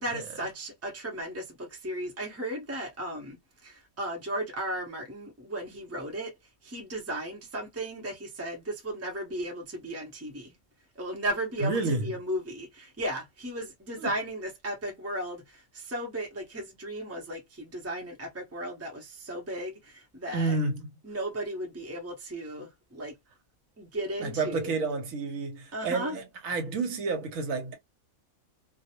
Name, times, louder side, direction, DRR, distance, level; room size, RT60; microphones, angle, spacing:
voice 1, 0.0-6.3 6.6-10.6 11.0-20.6 21.0-23.1 23.8-24.7 25.7-26.2, right 1 dB, 15° right, 0.6 m, -35 dB
voice 2, 11.6-12.1 14.0-14.1 20.3-20.9 24.2-27.7, right 3 dB, 70° right, 1.1 m, -30 dB
2.5 x 2.0 x 2.8 m
omnidirectional pair, 1.5 m